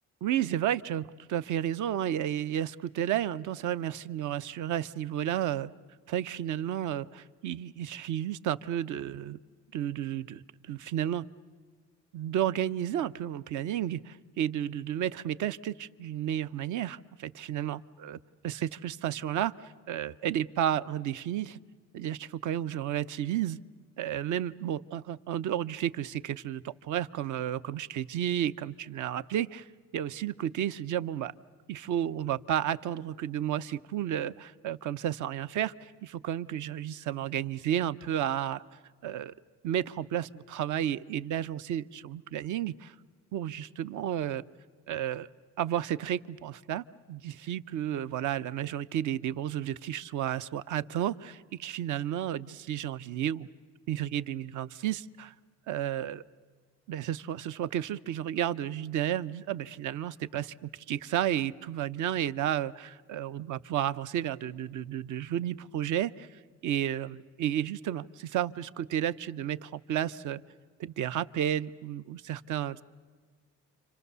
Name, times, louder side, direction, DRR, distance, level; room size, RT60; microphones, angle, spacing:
voice 1, 0.2-5.7 6.1-9.4 9.7-11.2 12.1-18.2 18.4-21.6 21.9-23.6 24.0-29.7 29.9-31.3 31.7-38.6 39.0-39.3 39.6-42.9 43.3-44.4 44.9-45.3 45.6-53.5 53.9-55.3 55.7-56.2 56.9-70.4 70.8-72.8, right 11 dB, 60° right, 15 dB, 0.7 m, -32 dB
29.5 x 25.5 x 6.9 m, 1.6 s
cardioid pair, 90°, 34 cm